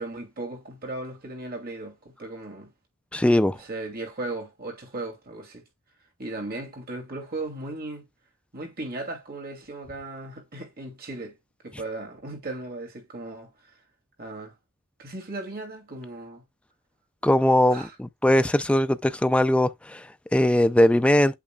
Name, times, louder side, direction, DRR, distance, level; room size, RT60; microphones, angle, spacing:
voice 1, 0.0-2.7 3.6-5.6 6.2-8.0 8.5-11.3 11.6-13.5 14.2-14.5 15.0-16.4 17.7-17.9, right 2 dB, 45° right, 2.6 m, -36 dB
voice 2, 3.1-3.6 17.2-21.4, left 1 dB, 5° left, 0.3 m, -20 dB
8.6 x 5.6 x 2.3 m
head